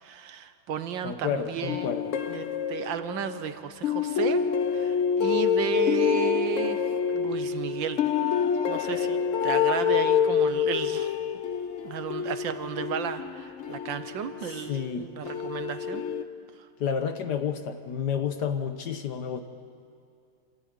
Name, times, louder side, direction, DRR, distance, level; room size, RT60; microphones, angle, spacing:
voice 1, 0.0-1.9 2.3-4.4 4.7-11.1 11.8-16.0, right 8 dB, 70° right, 10 dB, 1.5 m, -34 dB
voice 2, 1.0-2.1 14.4-15.1 16.8-19.4, left 7 dB, 60° left, 8 dB, 1.4 m, -30 dB
sound 1, 1.7-3.4 3.8-14.7 15.2-16.2, left 7 dB, 80° left, 0.6 m, -27 dB
27.0 x 13.5 x 9.3 m, 2.4 s
omnidirectional pair, 2.3 m